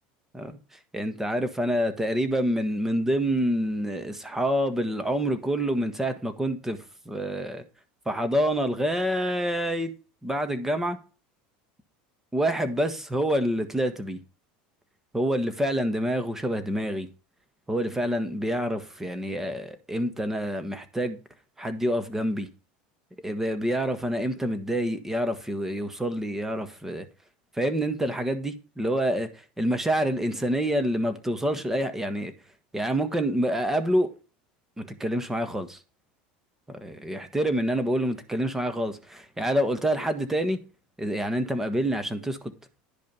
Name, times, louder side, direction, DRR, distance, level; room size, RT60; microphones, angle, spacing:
voice 1, 0.9-7.6 8.0-9.9 10.2-11.0 12.3-14.2 15.1-17.1 17.7-21.2 21.6-22.5 23.2-27.0 27.5-29.3 29.6-32.3 32.7-34.1 34.8-35.8 36.7-40.6 41.0-42.4, equal, 10° right, 1.5 m, -27 dB
10.5 x 5.1 x 5.4 m
supercardioid pair, 110°, 4 cm